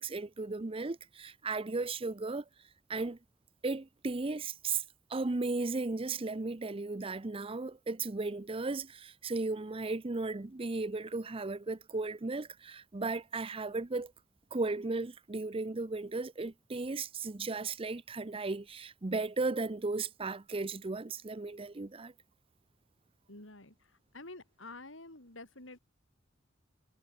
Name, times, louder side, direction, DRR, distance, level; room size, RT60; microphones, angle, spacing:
voice 1, 0.0-2.4 2.9-3.2 3.6-4.8 5.1-14.1 14.5-22.1, right 3 dB, 30° right, 0.6 m, -35 dB
voice 2, 23.3-25.8, left 2 dB, 80° left, 5.7 m, -49 dB
head